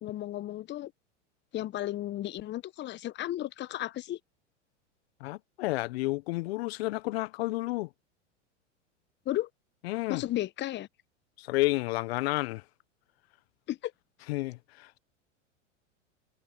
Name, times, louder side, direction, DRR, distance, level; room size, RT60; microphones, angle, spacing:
voice 1, 0.0-0.9 1.5-4.2 9.2-9.5 10.1-10.9 13.7-13.9, left 14 dB, 30° left, 1.3 m, -34 dB
voice 2, 5.2-7.9 9.8-10.2 11.4-12.6 14.3-15.0, left 20 dB, 55° left, 1.2 m, -31 dB
hypercardioid pair, 95°, 37 cm